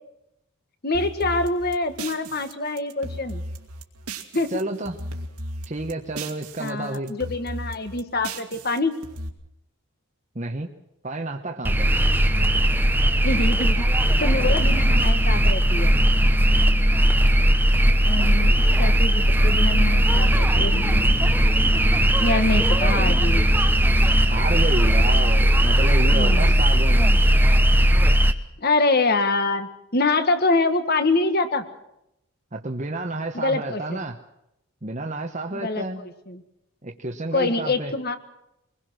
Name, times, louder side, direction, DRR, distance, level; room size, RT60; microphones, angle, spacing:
voice 1, 0.8-3.4 4.3-4.5 6.6-9.0 12.3-12.6 13.2-13.9 14.2-16.0 18.0-21.3 22.2-23.5 26.1-26.6 28.6-31.6 33.3-34.0 35.5-36.4 37.3-38.2, left 2 dB, 45° left, 10 dB, 1.7 m, -25 dB
sound 1, 0.9-4.6 4.9-6.7 6.9-9.3, right 1 dB, 85° right, 2.4 m, -36 dB
voice 2, 4.5-5.0 5.7-7.1 10.3-10.7 11.0-11.9 24.3-27.2 32.5-34.2 34.8-36.0 36.8-37.9, right 2 dB, 30° right, 2 dB, 1.1 m, -30 dB
sound 2, 11.6-28.3, equal, 10° right, 0.9 m, -18 dB
23.5 x 21.0 x 6.4 m, 0.84 s
head